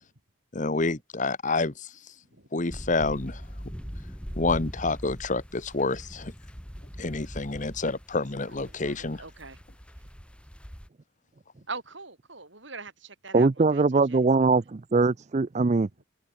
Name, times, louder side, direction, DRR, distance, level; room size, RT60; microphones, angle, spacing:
voice 1, 0.5-2.0 2.5-3.4 4.4-6.3 7.0-9.2, left 3 dB, 40° left, 1.1 m, -28 dB
sound 1, 2.7-10.9, equal, 5° left, 4.4 m, -41 dB
voice 2, 8.4-9.6 11.6-13.8 14.1-14.2 16.0-16.1, right 4 dB, 60° right, 5.1 m, -42 dB
voice 3, 13.3-15.9, right 3 dB, 35° right, 0.4 m, -22 dB
open air
head